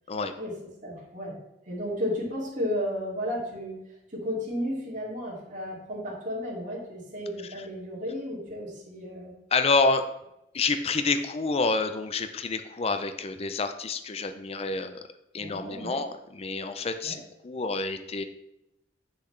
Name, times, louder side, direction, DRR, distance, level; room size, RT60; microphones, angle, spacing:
voice 1, 0.8-1.3 1.7-3.8 4.1-9.3 15.4-16.0 17.0-17.2, equal, 45° right, -6 dB, 2.4 m, -33 dB
voice 2, 9.5-10.1 10.5-15.1 15.3-18.2, left 3 dB, 35° left, 9 dB, 0.5 m, -28 dB
7.8 x 6.8 x 3.2 m, 0.87 s
head